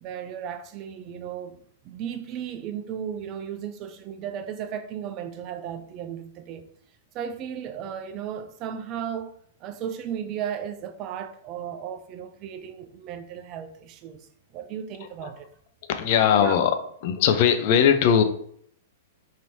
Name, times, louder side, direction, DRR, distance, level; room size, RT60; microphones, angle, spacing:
voice 1, 0.0-1.6 1.8-6.7 7.1-9.3 9.6-14.3 14.5-15.5 16.3-16.5, right 8 dB, 40° right, 0.4 m, -35 dB
voice 2, 15.9-16.8 17.0-18.2, left 8 dB, 50° left, 0.4 m, -20 dB
3.0 x 2.7 x 2.6 m
figure-of-eight pair, 105°, 0 cm